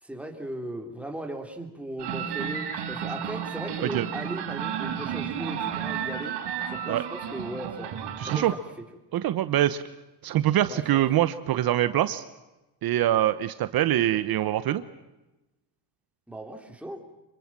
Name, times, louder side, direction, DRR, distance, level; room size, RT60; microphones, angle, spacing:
voice 1, 0.0-6.4 6.7-8.0 8.3-8.6 10.7-11.0 14.1-14.2 16.3-17.0, right 1 dB, 5° right, 3 dB, 3.4 m, -38 dB
sound 1, 2.0-8.5, right 8 dB, 75° right, 3.9 m, -32 dB
voice 2, 8.2-8.5 9.1-9.8 10.2-12.2 12.8-14.8, right 13 dB, 60° right, 13 dB, 1.0 m, -24 dB
26.5 x 23.0 x 7.5 m, 1.0 s
cardioid pair, 120°, 42 cm